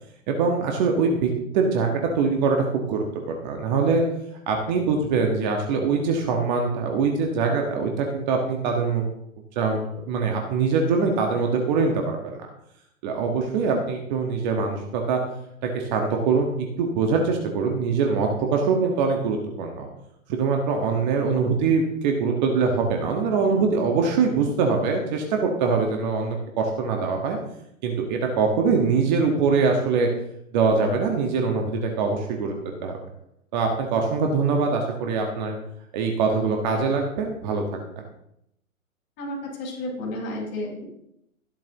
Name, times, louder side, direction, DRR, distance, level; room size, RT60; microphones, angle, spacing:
voice 1, 0.3-4.0 4.5-9.0 9.5-12.5 13.0-15.2 15.6-16.5 16.8-19.9 20.3-27.4 27.8-30.1 30.5-32.5 32.8-33.0 33.5-35.5 35.9-37.6, right 4 dB, 30° right, 2 dB, 1.6 m, -23 dB
voice 2, 39.2-40.9, left 1 dB, 25° left, -3 dB, 5.1 m, -32 dB
14.0 x 12.0 x 3.0 m, 0.78 s
figure-of-eight pair, 125°, 41 cm